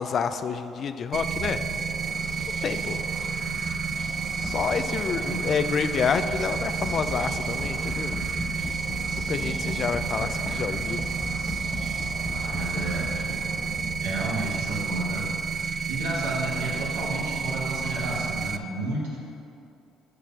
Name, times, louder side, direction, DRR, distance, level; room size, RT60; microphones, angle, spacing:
voice 1, 0.0-1.6 2.6-3.0 4.4-8.1 9.3-11.0, left 6 dB, 50° left, 10 dB, 0.4 m, -28 dB
sound 1, 1.0-14.8, right 2 dB, 65° right, 1.7 m, -41 dB
sound 2, 1.1-18.6, right 5 dB, 45° right, 0.4 m, -30 dB
sound 3, 3.4-14.3, left 1 dB, 20° left, 1.3 m, -37 dB
voice 2, 12.4-13.1 14.0-19.2, right 2 dB, 90° right, -5 dB, 2.0 m, -32 dB
6.7 x 4.8 x 7.0 m, 2.7 s
supercardioid pair, 70°, 0 cm